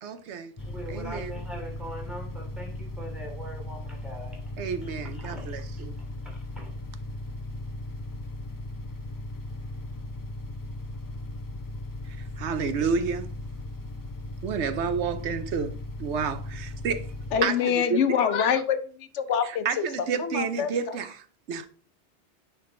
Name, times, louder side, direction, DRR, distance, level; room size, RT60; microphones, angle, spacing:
voice 1, 0.0-0.5 0.9-1.3 4.6-5.9 12.1-13.3 14.4-17.1 17.4-18.0 19.4-21.7, right 6 dB, 80° right, 1.0 m, -30 dB
sound 1, 0.6-17.4, left 1 dB, 35° left, 0.3 m, -37 dB
voice 2, 0.6-5.6 6.0-6.7, right 1 dB, ahead, 2.6 m, -42 dB
voice 3, 17.3-18.8 19.1-19.9 20.2-20.7, left 8 dB, 90° left, 1.1 m, -25 dB
9.7 x 3.8 x 3.8 m
omnidirectional pair, 1.2 m